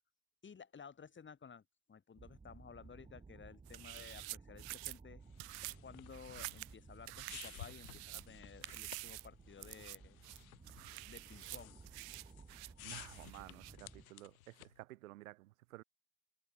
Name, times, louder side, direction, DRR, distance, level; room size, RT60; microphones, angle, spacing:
voice 1, 0.4-1.6 1.9-5.2 5.6-10.2 11.0-11.8, left 6 dB, 30° left, 4.9 m, -55 dB
sound 1, 2.2-14.1, right 4 dB, 15° right, 1.6 m, -58 dB
sound 2, 3.7-5.0 5.4-5.8 6.1-6.7 7.1-8.3 8.6-9.3 9.6-10.0 10.2-13.7, right 27 dB, 60° right, 1.0 m, -48 dB
sound 3, 5.2-14.8, left 15 dB, 85° left, 3.4 m, -56 dB
voice 2, 12.8-15.8, right 18 dB, 85° right, 0.9 m, -53 dB
hypercardioid pair, 85°, 41 cm